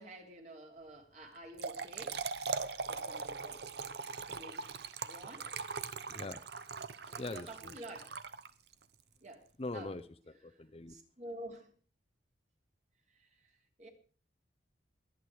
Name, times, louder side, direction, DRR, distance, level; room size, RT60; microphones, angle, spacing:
voice 1, 0.0-2.2 2.9-3.6 4.3-5.5 7.1-8.1 9.2-9.5 9.7-9.9 10.9-11.7 13.1-13.3 13.8-13.9, right 1 dB, 40° right, 3.1 m, -50 dB
Trickle dribble / Fill (with liquid), 1.4-8.8, right 4 dB, 60° right, 0.9 m, -41 dB
voice 2, 6.1-6.4 7.2-7.8 9.6-10.9, left 2 dB, 30° left, 0.7 m, -42 dB
22.5 x 8.8 x 4.8 m
head